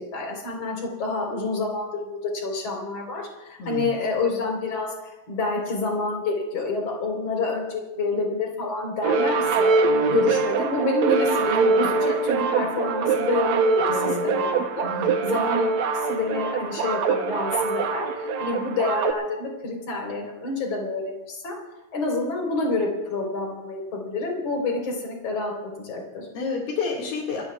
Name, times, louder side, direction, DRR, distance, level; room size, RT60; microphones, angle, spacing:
voice 1, 0.0-4.9 5.3-9.8 10.1-14.8 15.2-15.8 16.1-21.6 21.9-26.3, left 3 dB, 45° left, 0 dB, 5.1 m, -28 dB
voice 2, 3.6-3.9 10.0-10.2 13.9-14.3 14.8-15.2 26.3-27.4, left 4 dB, 80° left, -3 dB, 4.0 m, -30 dB
sound 1, 9.0-19.1, right 4 dB, 65° right, 1.8 m, -23 dB
28.0 x 16.0 x 2.4 m, 1.0 s
omnidirectional pair, 4.2 m